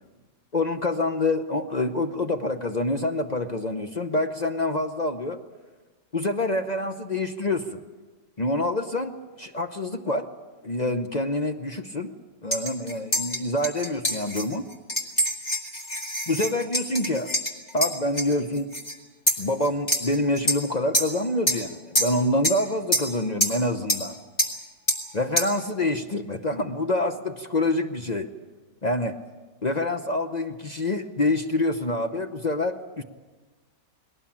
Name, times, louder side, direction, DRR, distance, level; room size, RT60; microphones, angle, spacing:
voice 1, 0.5-5.4 6.1-7.8 8.4-10.3 10.6-12.1 12.4-14.6 16.3-17.3 17.7-18.7 19.4-24.2 25.1-28.3 28.8-29.2 29.6-33.0, left 2 dB, 40° left, 7 dB, 0.6 m, -26 dB
sound 1, 12.5-18.9 19.3-20.6 20.9-21.2 21.5-21.7 22.0-22.6 22.9-23.1 23.4-23.6 23.9-24.1 24.4-24.6 24.9-25.1 25.4-25.6, equal, 20° left, 2.4 m, -26 dB
21.0 x 18.0 x 8.7 m, 1.3 s
omnidirectional pair, 1.9 m